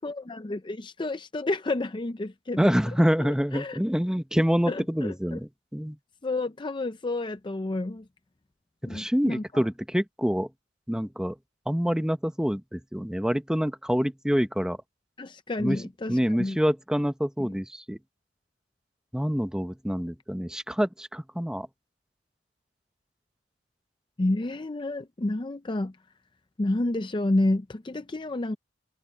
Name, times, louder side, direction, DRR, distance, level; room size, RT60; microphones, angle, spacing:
voice 1, 0.0-2.7 3.2-3.8 4.7-5.4 6.2-8.1 8.8-9.7 15.2-16.6 17.4-17.6 24.2-25.9 26.6-28.6, left 2 dB, 25° left, 0.5 m, -30 dB
voice 2, 2.6-6.0 8.8-10.5 10.9-11.3 11.7-14.8 15.6-15.8 16.1-18.0 19.1-21.7, equal, 5° right, 0.9 m, -26 dB
head